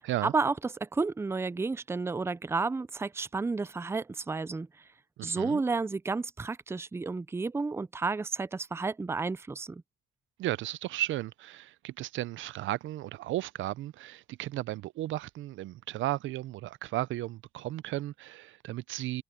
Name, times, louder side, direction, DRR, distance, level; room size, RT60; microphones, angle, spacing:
voice 1, 0.2-4.9 5.2-9.8, right 4 dB, 15° right, 0.4 m, -31 dB
voice 2, 5.2-5.6 10.4-19.2, right 15 dB, 80° right, 0.5 m, -34 dB
cardioid pair, 90°, 20 cm